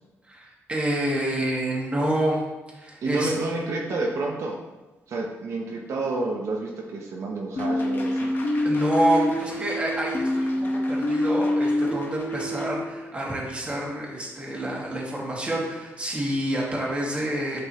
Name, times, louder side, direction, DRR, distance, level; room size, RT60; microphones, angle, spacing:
voice 1, 0.3-2.4 2.8-3.3 8.6-10.6 10.9-17.6, right 1 dB, 20° right, -3 dB, 2.0 m, -27 dB
voice 2, 3.0-4.6 5.1-8.3, right 2 dB, 70° right, -1 dB, 1.0 m, -29 dB
sound 1, 7.6-12.7, left 1 dB, 40° left, 1.3 m, -25 dB
10.0 x 5.4 x 3.0 m, 1.1 s
cardioid pair, 115°, 5 cm